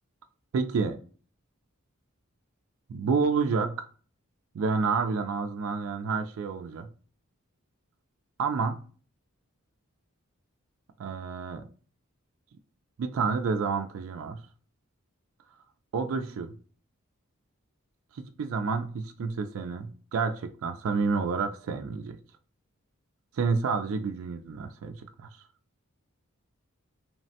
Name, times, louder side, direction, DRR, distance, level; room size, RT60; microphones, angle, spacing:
voice 1, 0.5-1.0 2.9-3.9 4.5-6.9 8.4-8.8 11.0-11.6 13.0-14.4 15.9-16.5 18.1-22.2 23.3-25.3, right 5 dB, 75° right, 0.3 m, -29 dB
3.1 x 2.1 x 2.7 m
head